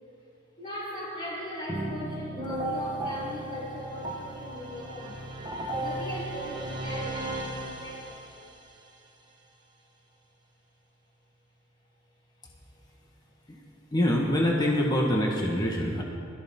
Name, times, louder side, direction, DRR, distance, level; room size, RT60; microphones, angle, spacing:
voice 1, 0.6-5.2 5.8-8.3, left 1 dB, 35° left, -10 dB, 3.3 m, -39 dB
sound 1, 1.7-8.5, right 1 dB, 20° right, 1.4 m, -35 dB
voice 2, 13.9-16.0, equal, 20° left, -1 dB, 1.4 m, -25 dB
22.0 x 13.5 x 3.7 m, 2.5 s
head